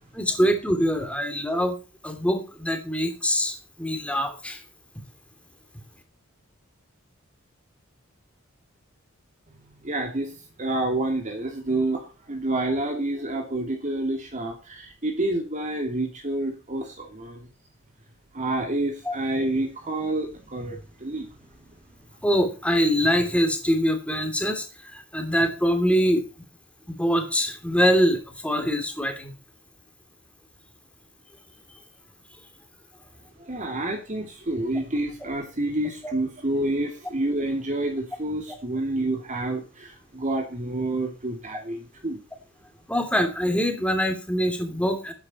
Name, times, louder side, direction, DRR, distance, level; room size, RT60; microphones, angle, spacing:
voice 1, 0.1-1.8 2.0-4.6 19.0-19.2 22.2-26.3 26.9-29.3 36.0-36.1 42.9-45.1, equal, 5° left, 5 dB, 2.9 m, -24 dB
voice 2, 9.8-10.3 10.6-17.5 18.3-21.3 33.4-42.2, right 2 dB, 40° right, 2 dB, 2.6 m, -28 dB
12.0 x 9.8 x 4.4 m, 0.32 s
head